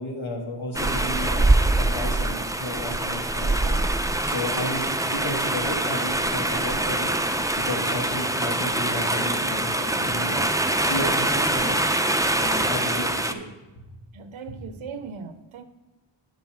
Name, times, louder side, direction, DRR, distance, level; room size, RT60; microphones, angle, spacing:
voice 1, 0.0-1.5 1.8-3.8 4.2-7.1 7.7-10.5 10.8-11.8 12.4-13.4 13.9-14.0 14.5-14.6, left 1 dB, 70° left, 0 dB, 2.0 m, -33 dB
sound 1, 0.7-13.3, right 2 dB, 5° right, 0.4 m, -24 dB
voice 2, 14.1-15.6, right 6 dB, 75° right, 10 dB, 0.6 m, -38 dB
8.8 x 5.5 x 6.1 m, 1.1 s
wide cardioid pair, 75°, 49 cm